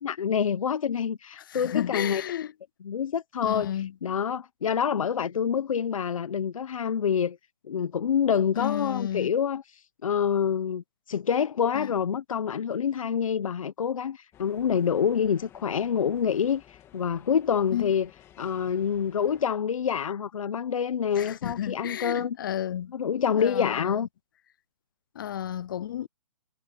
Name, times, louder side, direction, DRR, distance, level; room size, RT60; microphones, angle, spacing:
voice 1, 0.0-2.2 2.8-7.4 7.6-18.1 18.4-22.4 22.9-24.1, left 7 dB, 70° left, 1.2 m, -27 dB
voice 2, 1.5-2.5 3.4-3.9 8.6-9.3 11.8-11.9 17.7-17.9 21.2-22.9 23.3-23.9 25.2-26.1, left 11 dB, 35° left, 0.5 m, -32 dB
sound 1, 14.3-19.4, left 11 dB, 15° left, 2.6 m, -54 dB
hypercardioid pair, 160°, 18 cm